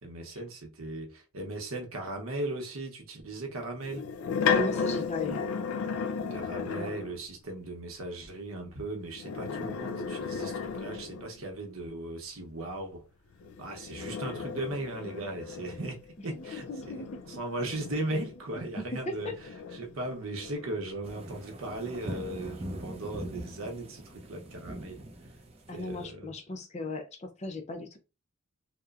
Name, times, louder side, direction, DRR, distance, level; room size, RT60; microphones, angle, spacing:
voice 1, 0.0-4.0 6.3-13.0 13.6-17.0 17.3-25.0 25.7-26.3, right 2 dB, 85° right, 0.8 m, -37 dB
sound 1, 3.8-7.2 9.1-11.5 13.4-18.6 19.1-20.9, left 6 dB, 90° left, 0.4 m, -34 dB
voice 2, 4.5-5.4 6.7-6.9 16.3-17.2 18.8-19.3 25.7-28.0, left 2 dB, 35° left, 0.5 m, -36 dB
sound 2, 21.0-26.1, right 1 dB, 30° right, 0.5 m, -42 dB
2.9 x 2.1 x 2.3 m
head